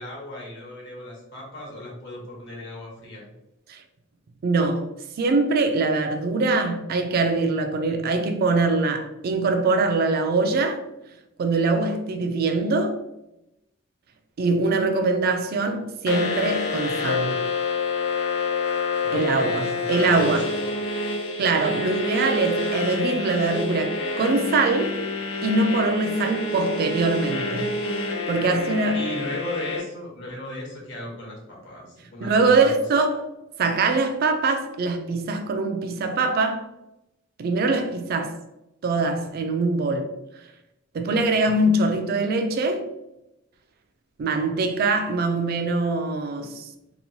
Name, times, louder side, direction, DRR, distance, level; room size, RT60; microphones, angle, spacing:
voice 1, 0.0-3.3 19.0-20.8 28.9-32.7, equal, 60° left, 0.9 m, -37 dB
voice 2, 4.4-4.9 5.2-10.8 11.4-13.0 14.4-17.5 19.1-20.5 21.4-25.0 25.4-27.7 28.3-29.0 32.2-33.3 33.6-36.7 37.4-38.4 38.8-40.1 40.9-42.9 44.2-46.7, right 3 dB, 50° right, 0.3 m, -23 dB
sound 1, 16.1-29.8, left 3 dB, 85° left, 0.6 m, -27 dB
2.9 x 2.2 x 2.6 m
head